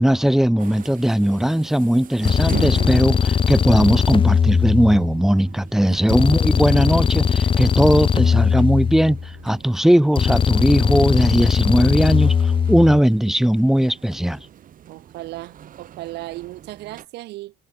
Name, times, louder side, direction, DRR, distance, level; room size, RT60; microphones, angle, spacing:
voice 1, 0.0-9.2 9.4-14.4, equal, ahead, 0.5 m, -18 dB
sound 1, 0.6-17.1, right 10 dB, 55° right, 3.4 m, -41 dB
sound 2, 2.2-5.3 6.1-9.4 10.2-13.0, left 7 dB, 30° left, 0.7 m, -19 dB
voice 2, 14.9-17.5, right 18 dB, 85° right, 4.7 m, -36 dB
cardioid pair, 110°, 17 cm